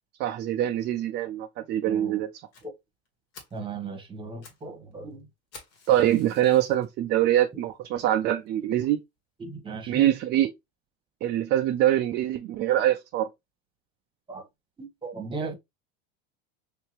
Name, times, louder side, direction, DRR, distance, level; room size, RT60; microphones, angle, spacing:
voice 1, 0.2-2.3 5.9-9.0 9.9-10.5 11.2-13.3, right 12 dB, 35° right, 0.4 m, -24 dB
voice 2, 1.9-2.2 3.5-5.3 9.4-10.1 14.3-14.4 14.8-15.5, right 4 dB, 15° right, 1.1 m, -37 dB
Fire, 2.5-2.7 3.1-3.2 3.3-3.6 4.2-4.7 4.9-5.0 5.5-6.9 7.4-7.5 8.1-8.2 8.5-8.6 8.9-9.0, left 4 dB, 55° left, 1.6 m, -50 dB
3.3 x 2.8 x 3.0 m
supercardioid pair, 115°, 31 cm